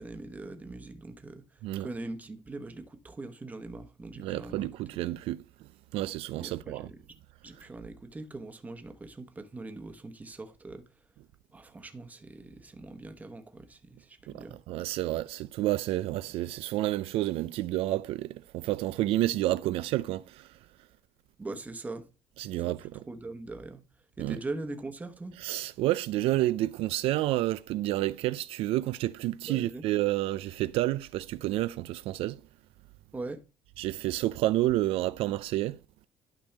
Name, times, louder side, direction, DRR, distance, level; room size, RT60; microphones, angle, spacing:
voice 1, 0.0-5.0 6.4-7.2 7.4-10.8 11.5-14.6 21.4-22.1 22.5-23.8 24.2-25.3 29.5-29.8 33.1-33.4, right 2 dB, 15° right, 1.0 m, -42 dB
voice 2, 4.2-5.4 5.9-6.9 14.3-20.5 22.4-22.8 24.2-24.4 25.4-32.4 33.8-35.8, right 15 dB, 75° right, 0.4 m, -29 dB
11.5 x 5.3 x 3.4 m
cardioid pair, 140°, 10 cm